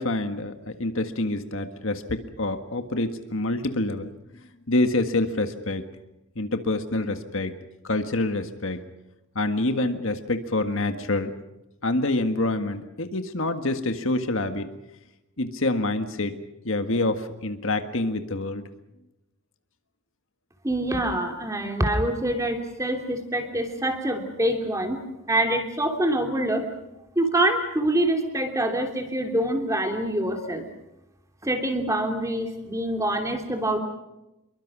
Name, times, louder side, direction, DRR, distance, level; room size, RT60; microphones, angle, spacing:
voice 1, 0.0-4.1 4.7-5.8 6.3-7.5 7.8-8.8 9.3-11.3 11.8-14.7 15.4-16.4 16.6-18.6, left 2 dB, 60° left, 8 dB, 1.7 m, -26 dB
voice 2, 20.6-25.0 25.3-26.7 27.2-30.6 31.4-33.8, right 1 dB, 15° right, 4 dB, 3.0 m, -25 dB
26.5 x 23.0 x 6.2 m, 0.94 s
head